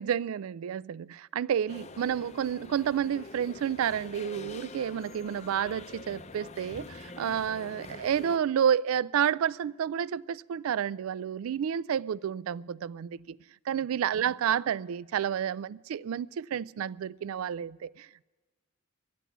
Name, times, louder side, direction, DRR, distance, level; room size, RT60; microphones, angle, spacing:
voice 1, 0.0-13.4 13.7-18.2, right 8 dB, 85° right, 0.3 m, -30 dB
sound 1, 1.7-8.4, left 3 dB, 30° left, 0.5 m, -46 dB
12.5 x 11.0 x 7.8 m
head